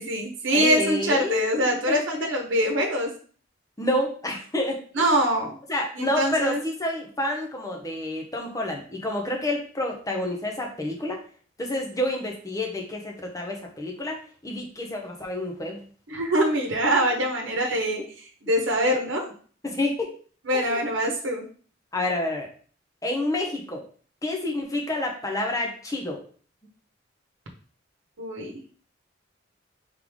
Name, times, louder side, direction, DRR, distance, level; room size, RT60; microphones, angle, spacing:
voice 1, 0.0-3.1 4.9-5.6 6.0-6.6 16.1-19.3 20.5-21.4 28.2-28.6, right 1 dB, 75° right, 1 dB, 1.0 m, -24 dB
voice 2, 0.5-2.0 3.8-5.0 5.7-11.2 11.6-14.2 14.4-15.8 19.6-20.1 20.5-20.8 21.9-22.5 23.0-23.8 24.2-26.2, left 1 dB, 15° left, 1 dB, 0.8 m, -29 dB
3.7 x 3.3 x 3.5 m, 0.43 s
head